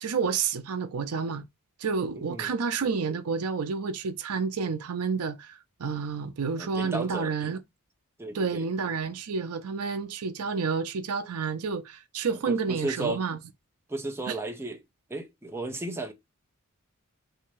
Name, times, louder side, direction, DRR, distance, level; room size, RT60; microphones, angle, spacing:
voice 1, 0.0-1.4 1.8-7.6 8.3-13.4 14.3-14.4, right 5 dB, 80° right, 0.5 m, -30 dB
voice 2, 2.2-2.5 6.6-7.3 8.2-8.7 12.5-13.2 13.9-14.8 15.1-16.1, right 2 dB, 10° right, 0.6 m, -34 dB
3.4 x 2.7 x 3.0 m
head